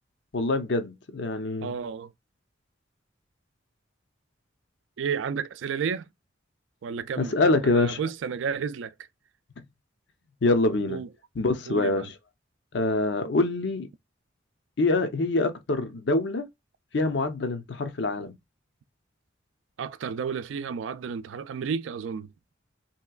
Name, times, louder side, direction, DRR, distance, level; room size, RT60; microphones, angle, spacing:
voice 1, 0.3-1.7 7.2-8.0 10.4-11.0 11.4-12.1 12.7-13.9 14.8-16.4 16.9-18.3, left 2 dB, 65° left, 0.6 m, -25 dB
voice 2, 1.6-2.1 5.0-6.1 6.8-7.4 7.6-8.9 10.9-11.1 11.7-12.1 19.8-22.3, right 6 dB, 75° right, 0.3 m, -32 dB
3.2 x 2.8 x 2.3 m
head